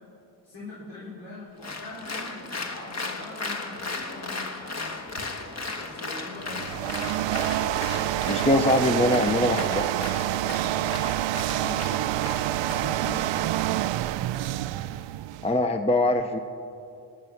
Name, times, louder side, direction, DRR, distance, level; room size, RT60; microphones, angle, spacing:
voice 1, 0.4-5.0 5.8-7.1 11.4-11.9 12.5-13.6, left 2 dB, 65° left, -8 dB, 4.1 m, -42 dB
Applause, 1.6-13.2, left 3 dB, 35° left, 1.4 m, -36 dB
sound 1, 6.4-15.6, right 14 dB, 70° right, 0.6 m, -27 dB
voice 2, 8.3-9.9 15.4-16.4, left 1 dB, 15° left, 7 dB, 0.7 m, -22 dB
19.5 x 9.6 x 5.9 m, 2.6 s
cardioid pair, 80°, 47 cm